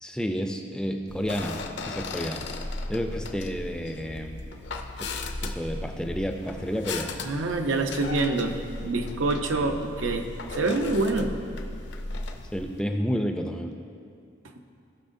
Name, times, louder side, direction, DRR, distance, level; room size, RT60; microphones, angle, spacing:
voice 1, 0.0-2.5 2.9-4.4 5.4-7.1 9.6-9.8 12.5-13.8, equal, 5° left, 4 dB, 0.4 m, -31 dB
sound 1, 1.1-12.8, left 2 dB, 65° left, 0.6 m, -36 dB
voice 2, 7.2-10.3 10.5-11.3, right 2 dB, 85° right, 4 dB, 0.7 m, -26 dB
17.5 x 6.0 x 2.6 m, 2.4 s
head